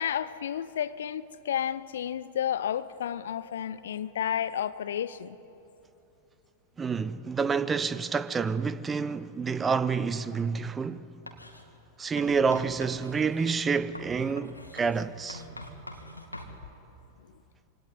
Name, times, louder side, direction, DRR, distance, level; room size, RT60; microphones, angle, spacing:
voice 1, 0.0-5.4, left 9 dB, 60° left, 0.8 m, -31 dB
voice 2, 6.8-11.1 12.0-15.4, right 5 dB, 15° right, 0.8 m, -28 dB
Writing, 11.3-11.6 12.2-16.6, left 1 dB, 85° left, 2.1 m, -45 dB
25.5 x 18.0 x 9.6 m
figure-of-eight pair, 90°, 0 cm